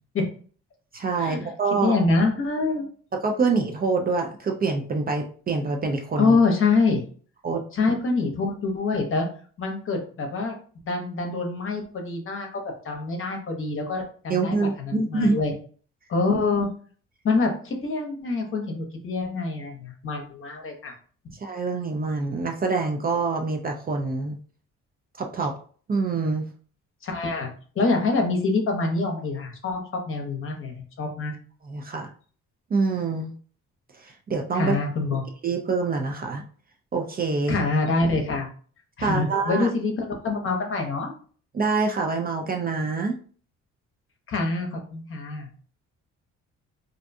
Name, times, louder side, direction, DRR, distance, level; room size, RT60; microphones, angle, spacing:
voice 1, 0.9-1.9 3.2-6.4 7.4-7.6 14.3-15.4 21.4-24.4 25.2-25.5 25.9-26.5 31.6-32.1 32.7-33.3 34.0-34.8 35.4-36.4 36.9-37.6 39.0-39.7 41.5-43.2, right 4 dB, 30° right, 2 dB, 0.4 m, -25 dB
voice 2, 1.8-2.9 6.2-7.0 7.7-9.3 9.6-10.6 10.8-15.5 16.1-16.7 17.2-20.9 27.0-31.3 34.5-35.2 37.5-38.5 39.0-41.1 44.3-45.5, left 3 dB, 45° left, 2 dB, 0.8 m, -25 dB
2.5 x 2.2 x 2.6 m, 0.44 s
cardioid pair, 90°, 30 cm